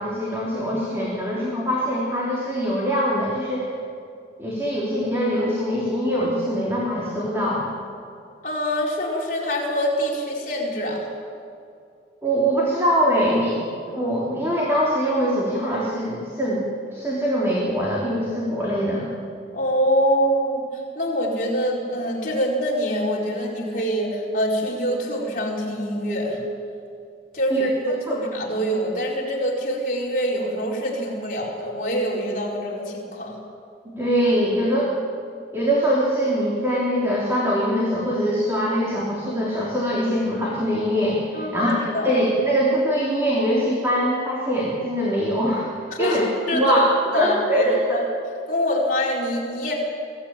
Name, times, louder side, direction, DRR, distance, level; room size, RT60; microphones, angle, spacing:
voice 1, 0.0-3.7 4.4-7.7 12.2-16.6 16.9-19.1 27.5-27.7 28.1-28.2 34.0-34.9 35.5-45.7 46.0-46.2 46.5-46.8 47.1-48.0, equal, 15° right, -5 dB, 3.5 m, -23 dB
voice 2, 8.4-11.1 19.5-26.4 27.3-33.3 41.3-41.6 41.9-42.1 45.9-46.2 46.5-46.8 47.1-48.0 48.5-49.7, equal, 45° left, -3 dB, 4.6 m, -25 dB
24.0 x 16.5 x 9.0 m, 2.5 s
head